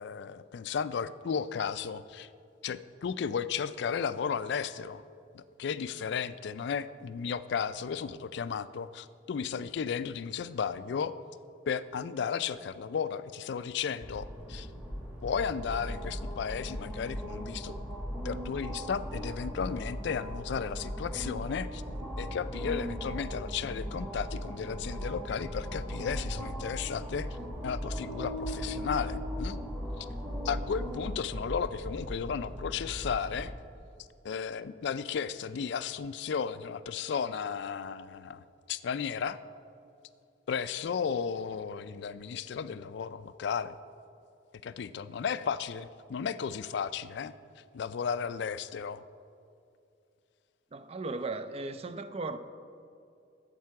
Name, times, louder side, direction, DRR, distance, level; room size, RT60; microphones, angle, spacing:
voice 1, 0.0-2.3 2.6-5.0 5.3-11.2 11.7-14.7 15.2-17.8 18.2-21.8 22.2-27.3 27.6-29.6 30.0-30.1 30.4-33.5 34.2-39.4 40.5-43.8 44.6-47.3 47.7-49.0, left 6 dB, 60° left, 0.3 m, -34 dB
sound 1, 14.0-33.5, equal, 5° right, 1.1 m, -38 dB
voice 2, 50.7-52.4, right 3 dB, 30° right, 0.4 m, -36 dB
12.0 x 7.6 x 4.7 m
head